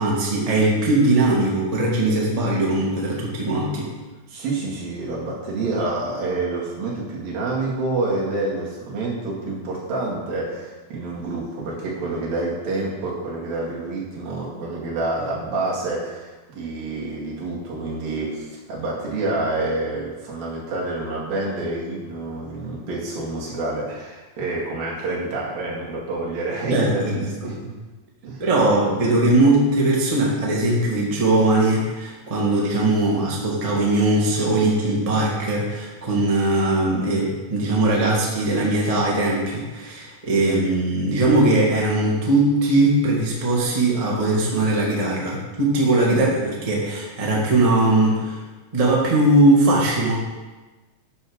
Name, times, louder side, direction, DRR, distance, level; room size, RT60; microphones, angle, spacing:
voice 1, 0.0-3.9 26.7-27.5 28.4-48.4 48.7-50.1, right 2 dB, 30° right, -4 dB, 0.6 m, -20 dB
voice 2, 4.3-27.7 28.2-28.4 46.1-46.2, right 2 dB, 65° right, -4 dB, 3.7 m, -28 dB
9.4 x 5.5 x 6.4 m, 1.2 s
omnidirectional pair, 4.4 m